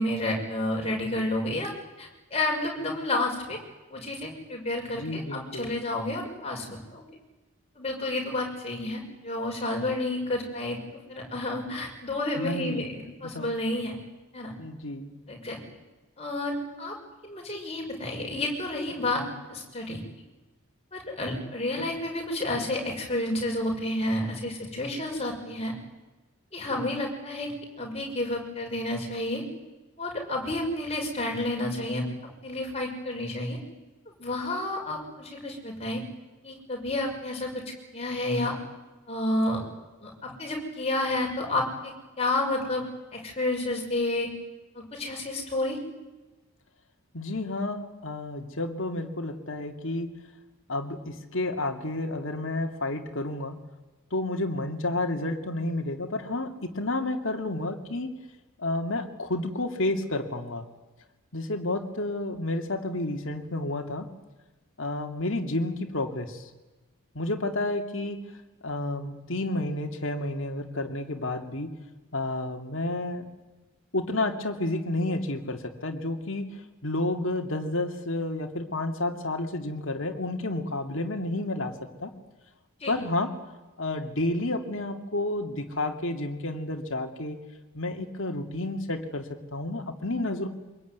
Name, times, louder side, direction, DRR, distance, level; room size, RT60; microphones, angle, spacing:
voice 1, 0.0-1.7 2.0-3.6 3.9-7.1 7.8-10.8 11.1-13.9 14.3-14.5 15.3-15.6 16.2-17.0 17.2-19.2 19.5-20.0 20.9-25.7 26.5-27.5 27.8-29.4 30.0-32.0 32.4-33.6 34.2-36.0 36.4-37.5 37.9-38.5 39.1-39.7 40.0-42.8 43.1-44.3 44.7-45.8 82.8-82.9, left 1 dB, 25° left, 1 dB, 6.1 m, -30 dB
voice 2, 4.9-5.7 12.3-12.9 13.2-13.5 14.6-15.1 47.1-50.2 50.7-53.6 54.1-58.1 58.6-60.6 61.3-64.1 64.8-66.4 67.1-68.2 68.6-71.7 72.1-73.2 73.9-76.5 76.8-82.1 82.9-83.3 83.8-87.4 87.7-90.5, left 2 dB, 60° left, 4 dB, 2.7 m, -30 dB
25.0 x 22.0 x 9.6 m, 1.1 s
head